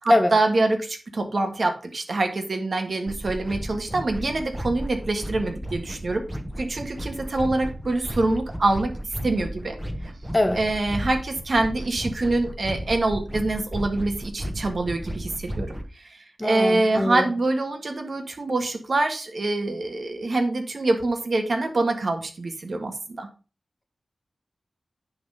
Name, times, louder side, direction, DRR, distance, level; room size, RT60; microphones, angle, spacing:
voice 1, 0.0-6.2 6.6-8.9 9.2-9.8 10.5-23.3, right 2 dB, 65° right, 5 dB, 1.7 m, -25 dB
sound 1, 3.1-15.9, equal, 10° right, 1.2 m, -34 dB
voice 2, 16.4-17.2, left 1 dB, 20° left, 5 dB, 1.6 m, -22 dB
10.0 x 3.9 x 5.7 m, 0.35 s
wide cardioid pair, 80°, 0 cm